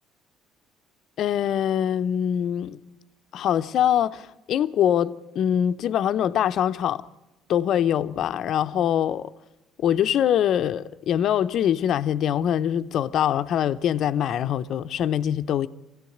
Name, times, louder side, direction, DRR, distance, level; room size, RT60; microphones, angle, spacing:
voice 1, 1.2-2.8 3.3-7.0 7.5-9.3 9.8-15.7, left 10 dB, 55° left, 0.8 m, -23 dB
23.0 x 16.0 x 7.9 m
cardioid pair, 120°, 0 cm